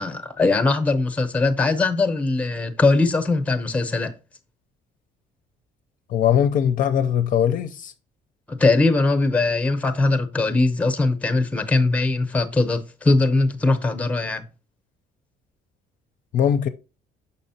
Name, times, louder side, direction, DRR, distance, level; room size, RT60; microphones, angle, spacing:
voice 1, 0.0-4.2 8.5-14.4, left 3 dB, 10° left, 0.7 m, -21 dB
voice 2, 6.1-7.9 16.3-16.7, left 9 dB, 50° left, 0.5 m, -20 dB
6.5 x 5.5 x 2.7 m
cardioid pair, 110°, 17 cm